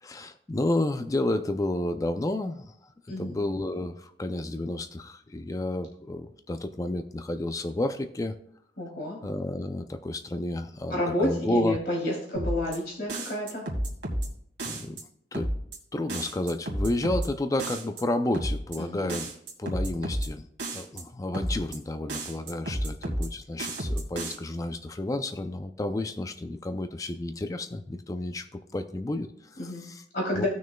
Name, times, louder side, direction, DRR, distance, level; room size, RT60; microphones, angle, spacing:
voice 1, 0.0-2.9 3.2-8.4 9.2-11.8 14.6-15.0 15.3-15.5 15.9-19.3 19.6-20.5 20.7-30.0 30.3-30.4, left 2 dB, 20° left, 8 dB, 0.4 m, -31 dB
voice 2, 3.1-3.4 8.8-9.2 10.9-13.6 18.8-19.1 29.6-29.8 30.1-30.5, left 1 dB, 60° left, -4 dB, 3.0 m, -30 dB
sound 1, 12.3-12.8 13.1-14.3 14.6-15.0 15.3-15.8 16.1-17.3 17.6-18.0 18.3-18.8 19.1-20.3 20.6-21.0 21.3-21.8 22.1-23.3 23.6-24.3, right 1 dB, 80° right, 2.1 m, -31 dB
17.0 x 6.2 x 2.2 m, 0.68 s
head